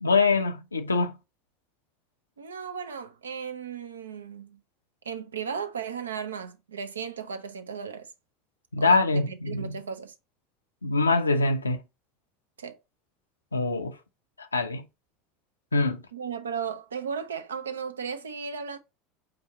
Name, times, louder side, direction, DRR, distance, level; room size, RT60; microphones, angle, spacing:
voice 1, 0.0-1.1 8.7-9.8 10.8-11.8 13.5-14.0 14.4-14.8 15.7-16.0, left 3 dB, 90° left, 0.3 m, -24 dB
voice 2, 2.4-4.6 5.0-8.1 8.8-10.1 12.6-12.8 16.1-18.8, right 6 dB, 80° right, 0.5 m, -35 dB
3.9 x 2.8 x 4.0 m
figure-of-eight pair, 75°, 0 cm